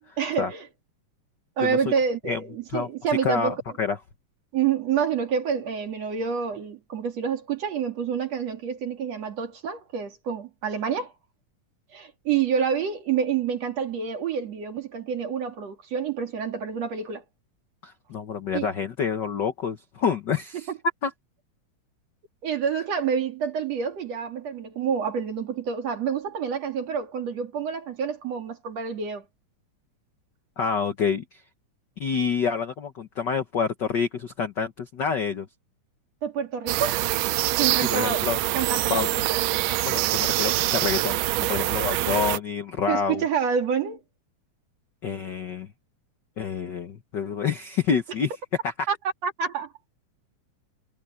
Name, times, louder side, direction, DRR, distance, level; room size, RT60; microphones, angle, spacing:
voice 1, 0.2-0.7 1.6-3.6 4.5-11.1 11.9-17.2 18.5-18.7 20.7-20.8 22.4-29.2 36.2-37.0 37.6-38.3 38.5-39.1 42.9-44.0 48.9-49.0 49.2-49.7, right 7 dB, 55° right, 3.4 m, -28 dB
voice 2, 3.2-4.0 17.8-20.7 21.0-21.1 30.6-31.4 32.0-35.5 37.9-38.4 38.9-39.1 39.8-43.2 45.0-45.7 46.4-48.3 48.6-48.7, left 6 dB, 65° left, 1.1 m, -27 dB
sound 1, 36.7-42.4, right 16 dB, 85° right, 2.2 m, -25 dB
omnidirectional pair, 3.7 m